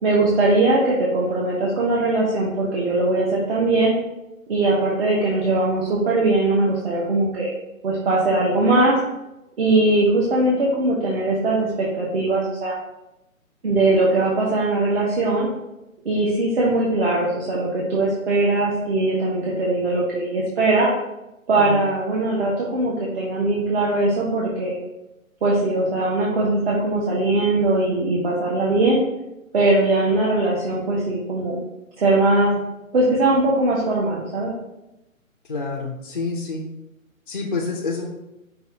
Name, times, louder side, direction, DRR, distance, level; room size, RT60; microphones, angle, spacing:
voice 1, 0.0-3.9 4.5-7.5 7.8-9.0 9.6-12.8 13.6-15.5 16.0-20.9 21.5-24.8 25.4-29.0 29.5-31.6 32.0-32.5 32.9-34.5, right 2 dB, 45° right, -5 dB, 0.9 m, -20 dB
voice 2, 35.4-36.7 37.3-38.1, left 3 dB, 35° left, -2 dB, 0.4 m, -28 dB
5.4 x 2.3 x 4.1 m, 0.93 s
hypercardioid pair, 160°, 42 cm